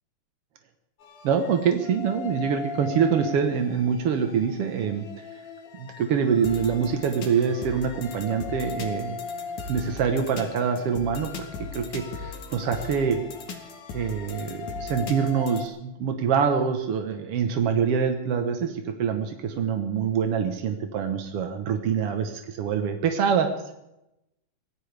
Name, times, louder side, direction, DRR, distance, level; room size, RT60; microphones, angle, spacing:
sound 1, 1.0-15.7, left 4 dB, 60° left, 2.9 m, -38 dB
voice 1, 1.2-5.0 5.8-9.2 9.7-11.3 11.7-13.2 13.9-23.5, right 6 dB, 70° right, 5 dB, 1.4 m, -25 dB
24.5 x 17.0 x 3.4 m, 0.87 s
omnidirectional pair, 4.3 m